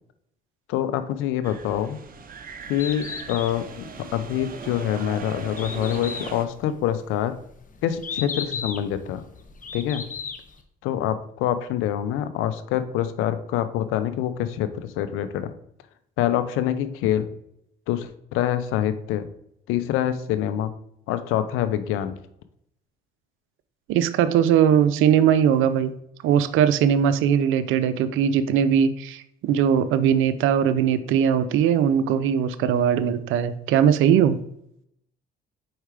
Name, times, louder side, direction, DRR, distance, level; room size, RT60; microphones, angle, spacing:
voice 1, 0.7-2.0 2.7-7.3 7.8-9.2 9.7-10.1 10.8-15.5 16.2-17.3 17.9-19.3 19.7-20.7 21.1-22.2, left 11 dB, 80° left, 12 dB, 0.6 m, -26 dB
sound 1, 1.4-6.5, right 5 dB, 45° right, 0.9 m, -39 dB
Bird, 2.6-10.6, left 6 dB, 40° left, 1.0 m, -36 dB
voice 2, 23.9-25.9 26.2-34.4, right 8 dB, 75° right, 13 dB, 0.6 m, -20 dB
4.8 x 4.3 x 4.9 m, 0.75 s
supercardioid pair, 70°, 21 cm